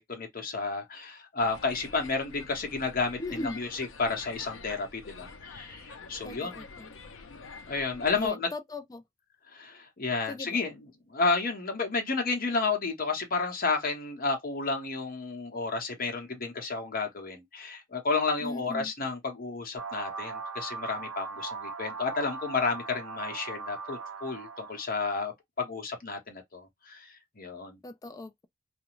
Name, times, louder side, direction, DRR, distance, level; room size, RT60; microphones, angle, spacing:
voice 1, 0.0-6.6 7.7-8.5 9.5-25.3 25.6-27.8, left 4 dB, 45° left, 1.0 m, -31 dB
sound 1, 1.4-8.3, left 4 dB, 90° left, 0.6 m, -47 dB
voice 2, 3.2-3.6 6.2-6.9 8.2-9.0 10.3-10.6 18.4-18.9 27.8-28.5, left 2 dB, 20° left, 0.3 m, -38 dB
sound 2, 19.8-24.9, right 4 dB, 75° right, 0.6 m, -39 dB
2.5 x 2.2 x 2.9 m
head